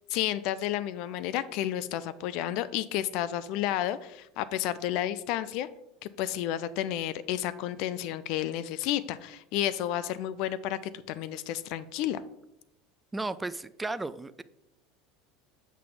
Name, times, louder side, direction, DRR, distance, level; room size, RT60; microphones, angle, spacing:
voice 1, 0.1-5.7 6.2-12.2, left 12 dB, 55° left, 15 dB, 0.4 m, -31 dB
voice 2, 13.1-14.4, right 2 dB, 15° right, 15 dB, 0.4 m, -34 dB
7.3 x 6.0 x 3.8 m, 0.85 s
figure-of-eight pair, 75°, 0 cm